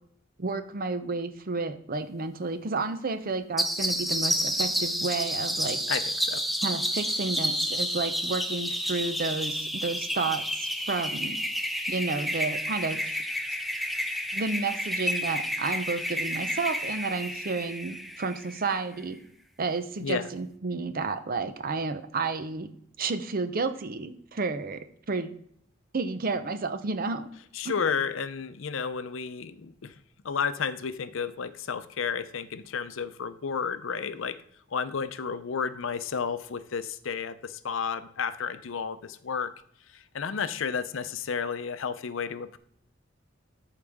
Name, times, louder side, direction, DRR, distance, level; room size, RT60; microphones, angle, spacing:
voice 1, 0.4-5.8 6.6-11.4 11.9-13.1 14.3-19.2 19.6-22.7 23.0-24.8 25.1-25.3 25.9-27.3 27.6-27.7, right 3 dB, 45° right, 10 dB, 0.6 m, -31 dB
sound 1, 3.6-18.8, equal, ahead, 0.7 m, -30 dB
voice 2, 5.9-6.4 20.0-20.3 27.5-29.9 30.2-34.4 34.7-39.5 39.9-42.6, left 6 dB, 75° left, 13 dB, 0.6 m, -32 dB
13.5 x 4.9 x 3.5 m, 0.68 s
head